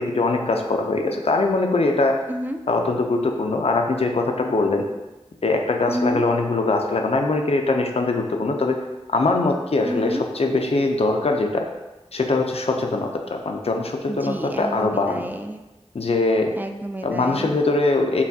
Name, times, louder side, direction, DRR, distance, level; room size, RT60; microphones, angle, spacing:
voice 1, 0.0-2.2 2.7-4.9 5.4-8.8 9.1-11.7 12.1-15.2 15.9-16.5 17.0-18.2, left 3 dB, 65° left, 3 dB, 0.5 m, -22 dB
voice 2, 2.3-2.6 5.9-6.3 9.8-10.3 14.1-15.6 16.5-17.5, equal, 15° right, 6 dB, 0.3 m, -29 dB
5.6 x 2.3 x 2.7 m, 1.1 s
wide cardioid pair, 40°, 11 cm